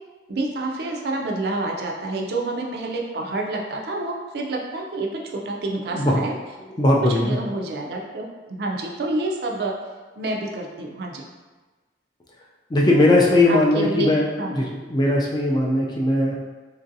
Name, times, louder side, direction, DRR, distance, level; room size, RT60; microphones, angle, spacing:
voice 1, 0.3-6.3 7.0-9.7 10.2-11.2 13.5-14.6, right 2 dB, 60° right, 0 dB, 0.4 m, -28 dB
voice 2, 6.8-7.4 12.7-16.4, left 1 dB, 25° left, -2 dB, 0.3 m, -19 dB
3.0 x 2.5 x 2.6 m, 1.3 s
head